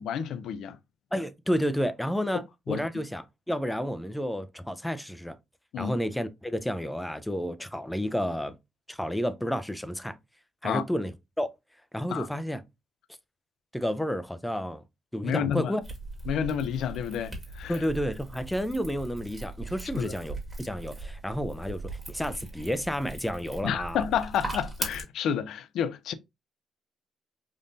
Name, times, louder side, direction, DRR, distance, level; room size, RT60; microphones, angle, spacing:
voice 1, 0.0-0.8 2.7-2.8 5.7-6.0 10.6-10.8 12.1-12.3 15.2-15.7 16.3-17.8 20.0-20.1 23.6-26.1, left 8 dB, 80° left, 0.3 m, -30 dB
voice 2, 1.1-5.4 5.8-8.6 8.9-10.2 10.6-11.5 11.9-12.6 13.7-14.8 15.1-15.8 17.7-21.8 22.1-24.0, equal, 5° left, 0.4 m, -31 dB
sound 1, 15.8-25.0, right 2 dB, 20° right, 1.4 m, -39 dB
3.6 x 2.6 x 2.5 m
cardioid pair, 90°, 0 cm